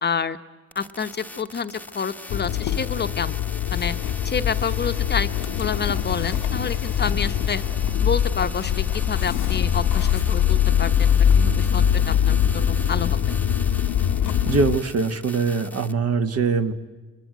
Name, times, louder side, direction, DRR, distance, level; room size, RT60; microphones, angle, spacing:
voice 1, 0.0-0.4 0.7-3.4 3.7-4.0 4.2-5.3 5.6-7.6 8.0-13.2, left 6 dB, 35° left, 10 dB, 0.8 m, -28 dB
sound 1, 0.7-15.9, left 2 dB, 5° left, 1.0 m, -40 dB
Motor vehicle (road) / Engine starting, 2.3-14.8, left 9 dB, 80° left, 0.9 m, -22 dB
voice 2, 14.4-16.7, right 4 dB, 55° right, 7 dB, 1.4 m, -22 dB
27.0 x 22.0 x 9.3 m, 1.3 s
cardioid pair, 90°, 30 cm